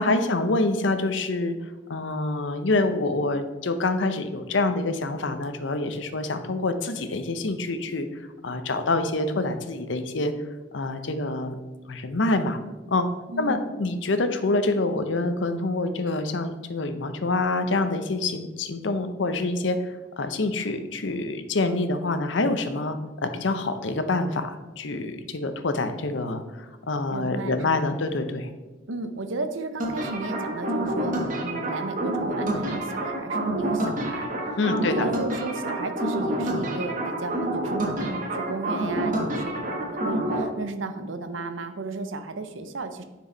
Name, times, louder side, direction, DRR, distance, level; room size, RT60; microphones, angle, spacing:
voice 1, 0.0-1.6 1.9-8.1 8.4-10.3 10.7-11.6 11.9-12.6 12.9-13.1 13.4-19.8 20.2-23.0 23.2-28.5 34.6-35.1, left 2 dB, 70° left, 8 dB, 0.7 m, -26 dB
voice 2, 13.3-13.7 27.1-28.0 28.9-34.3 34.9-43.0, right 2 dB, 85° right, 9 dB, 0.7 m, -34 dB
sound 1, 29.8-40.4, right 1 dB, 45° right, 1.3 m, -28 dB
10.0 x 4.7 x 4.0 m, 1.2 s
head